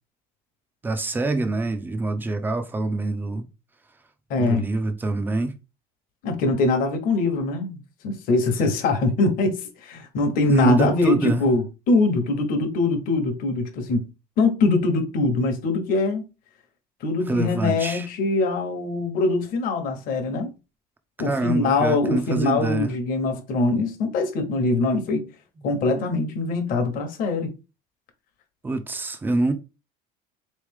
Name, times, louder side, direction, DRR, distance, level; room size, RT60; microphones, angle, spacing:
voice 1, 0.8-3.4 4.4-5.5 10.5-11.4 17.3-18.1 20.3-20.4 21.2-22.9 28.6-29.5, right 2 dB, 10° right, 0.5 m, -25 dB
voice 2, 4.3-4.7 6.2-14.1 14.4-16.2 17.0-20.5 21.2-25.3 25.6-27.5, left 3 dB, 50° left, 1.1 m, -23 dB
3.9 x 3.2 x 3.5 m
cardioid pair, 155°, 18 cm